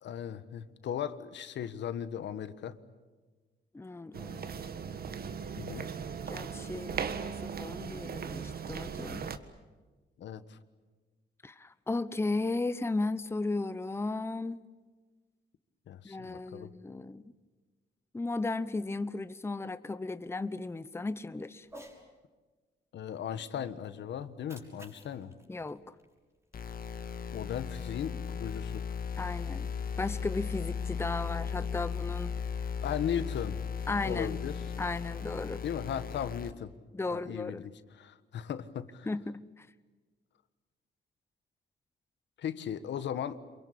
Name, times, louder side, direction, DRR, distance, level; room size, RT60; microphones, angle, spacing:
voice 1, 0.0-2.8 5.6-5.9 10.2-10.6 15.9-16.7 22.9-25.3 27.3-28.8 32.8-33.6 34.0-34.6 35.6-36.7 37.1-37.7 38.0-39.1 42.4-43.4, left 9 dB, 75° left, 1.4 m, -37 dB
voice 2, 3.7-4.5 6.3-9.3 11.4-14.6 16.0-17.2 18.1-21.7 25.5-25.8 29.2-29.7 30.0-32.3 33.9-34.4 34.8-35.6 36.9-37.6 39.1-39.7, left 3 dB, 15° left, 0.8 m, -35 dB
sound 1, 4.1-9.4, right 6 dB, 55° right, 1.6 m, -38 dB
Cat, 21.6-22.0 24.2-26.6, equal, 15° right, 6.0 m, -53 dB
sound 2, 26.5-36.5, left 6 dB, 50° left, 1.9 m, -36 dB
27.5 x 23.5 x 8.6 m
cardioid pair, 110°, 19 cm